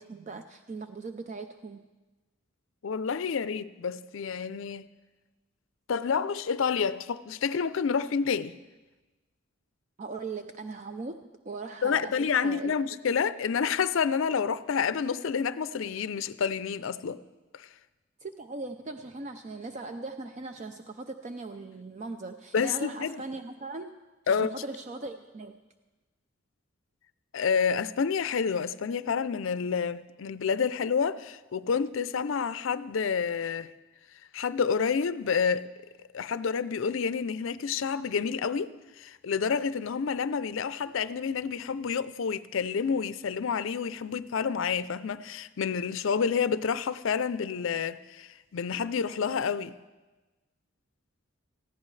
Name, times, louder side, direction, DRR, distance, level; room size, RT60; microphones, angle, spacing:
voice 1, 0.0-1.8 10.0-12.2 12.4-12.7 18.2-23.9 24.3-25.6, right 3 dB, 35° right, 0.4 m, -39 dB
voice 2, 2.8-4.9 5.9-8.6 11.8-17.2 17.5-17.7 22.5-23.2 24.3-24.6 27.3-33.7 34.3-35.7 36.1-38.7 39.0-49.7, left 6 dB, 70° left, 0.4 m, -29 dB
19.0 x 15.0 x 3.2 m
head